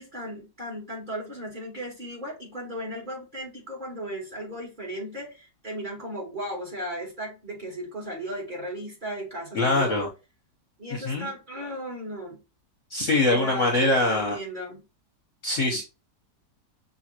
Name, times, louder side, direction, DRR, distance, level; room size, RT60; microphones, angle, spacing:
voice 1, 0.0-10.1 10.8-12.4 13.3-13.8 14.1-14.8, equal, 25° right, 2.9 m, -36 dB
voice 2, 9.5-10.1 11.0-11.3 12.9-14.4 15.4-15.8, left 2 dB, 50° left, 1.1 m, -23 dB
6.2 x 2.9 x 2.8 m
omnidirectional pair, 1.9 m